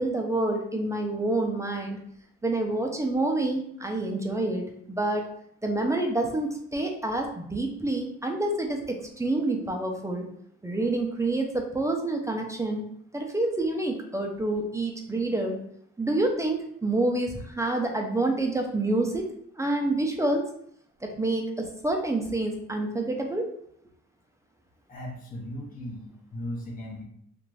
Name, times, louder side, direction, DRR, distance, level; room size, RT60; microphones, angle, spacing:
voice 1, 0.0-2.0 2.4-5.3 5.6-10.3 10.6-12.8 13.1-15.6 16.0-19.3 19.6-20.4 21.0-23.5, right 2 dB, 10° right, 2 dB, 0.5 m, -28 dB
voice 2, 24.9-27.0, left 1 dB, 30° left, -2 dB, 0.8 m, -37 dB
2.5 x 2.5 x 3.1 m, 0.67 s
cardioid pair, 90°, 30 cm